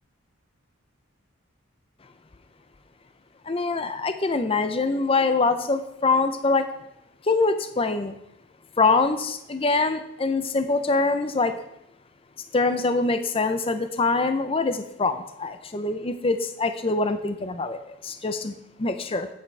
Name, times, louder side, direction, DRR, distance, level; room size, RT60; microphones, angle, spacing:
voice 1, 3.5-6.7 7.2-8.2 8.8-11.6 12.5-18.5 18.8-19.3, left 3 dB, 25° left, 9 dB, 0.5 m, -24 dB
11.0 x 8.4 x 3.3 m, 0.83 s
head